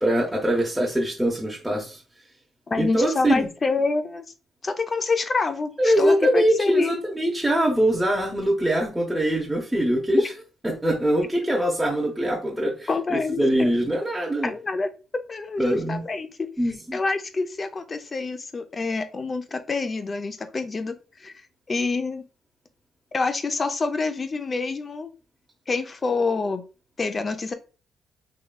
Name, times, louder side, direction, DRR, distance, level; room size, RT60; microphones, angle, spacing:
voice 1, 0.0-2.0 2.8-3.5 5.8-10.2 10.6-14.5 15.6-16.0 16.6-17.0, right 1 dB, 5° right, 0.8 m, -23 dB
voice 2, 2.7-4.2 4.6-6.9 12.9-13.7 14.4-16.5 16.9-21.3 21.7-22.2 23.1-25.1 25.7-26.7 27.0-27.5, left 3 dB, 35° left, 0.5 m, -27 dB
3.7 x 3.0 x 2.2 m
cardioid pair, 90°, 0 cm